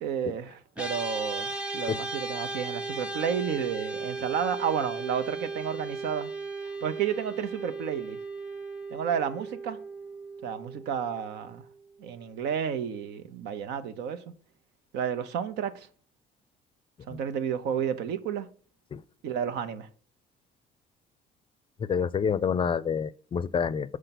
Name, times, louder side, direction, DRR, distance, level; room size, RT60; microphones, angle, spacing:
voice 1, 0.0-6.3 6.8-8.2 8.9-9.8 10.4-11.6 12.0-14.2 14.9-15.9 17.1-18.5 19.2-19.9, right 8 dB, 85° right, 0.9 m, -31 dB
sound 1, 0.8-12.2, right 3 dB, 5° right, 0.9 m, -37 dB
voice 2, 21.8-24.0, left 6 dB, 30° left, 0.4 m, -28 dB
6.7 x 4.9 x 5.9 m
cardioid pair, 110°, 17 cm